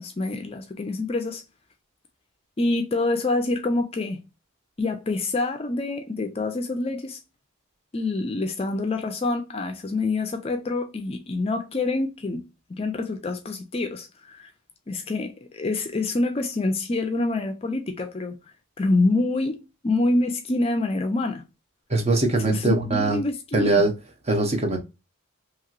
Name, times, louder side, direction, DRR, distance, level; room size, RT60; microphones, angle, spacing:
voice 1, 0.0-1.4 2.6-4.2 4.8-7.2 7.9-14.5 14.9-18.4 18.8-19.6 19.8-21.4 22.4-23.8, left 2 dB, 25° left, 0.4 m, -26 dB
voice 2, 21.9-23.2 23.5-23.9 24.3-24.8, right 2 dB, 30° right, 0.7 m, -21 dB
3.0 x 2.8 x 2.3 m
head